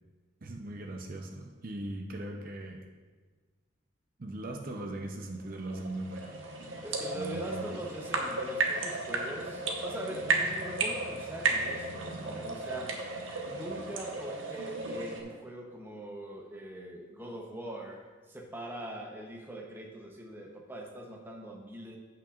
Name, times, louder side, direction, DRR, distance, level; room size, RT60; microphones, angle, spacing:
voice 1, 0.4-2.9 4.2-6.6 7.1-7.8, right 1 dB, 45° right, 2 dB, 0.6 m, -39 dB
sound 1, 5.4-15.2, right 3 dB, 80° right, 1.1 m, -34 dB
voice 2, 6.8-12.9 13.4-22.0, right 1 dB, 10° right, 0 dB, 0.8 m, -42 dB
14.5 x 5.8 x 2.4 m, 1.4 s
head